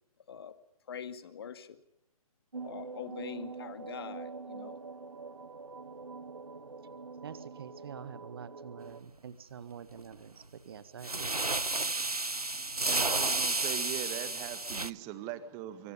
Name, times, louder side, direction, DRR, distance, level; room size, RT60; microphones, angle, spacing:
voice 1, 0.9-1.8 2.6-4.8, left 8 dB, 40° left, 11 dB, 2.0 m, -43 dB
sound 1, 2.5-9.0, right 4 dB, 65° right, 2.1 m, -44 dB
voice 2, 7.2-12.2, right 7 dB, 40° right, 14 dB, 1.6 m, -47 dB
sound 2, 9.9-10.2 11.0-14.9, right 2 dB, 85° right, 0.8 m, -31 dB
voice 3, 12.0-15.9, right 12 dB, 20° right, 12 dB, 1.8 m, -41 dB
26.0 x 24.5 x 5.5 m, 0.85 s
figure-of-eight pair, 135°, 19 cm